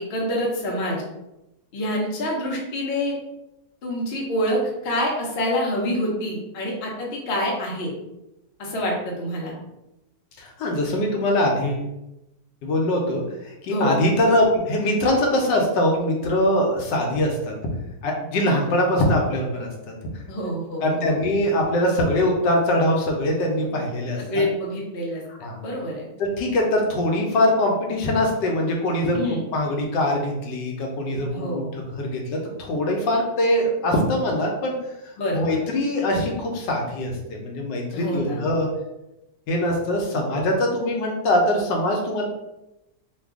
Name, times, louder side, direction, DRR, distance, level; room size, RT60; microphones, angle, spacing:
voice 1, 0.1-1.0 1.7-3.1 3.8-7.9 8.6-9.5 13.7-13.9 20.3-21.1 24.2-25.2 25.6-26.1 29.1-29.4 31.3-31.7 35.2-35.6 37.9-38.4, equal, 50° left, -3 dB, 0.8 m, -26 dB
voice 2, 10.4-11.8 12.6-17.5 18.0-19.9 20.8-24.4 25.4-25.6 26.2-29.2 29.5-34.7 35.0-38.7 39.5-42.2, left 1 dB, 75° left, 0 dB, 1.3 m, -22 dB
3.3 x 2.3 x 3.5 m, 0.92 s
omnidirectional pair, 2.0 m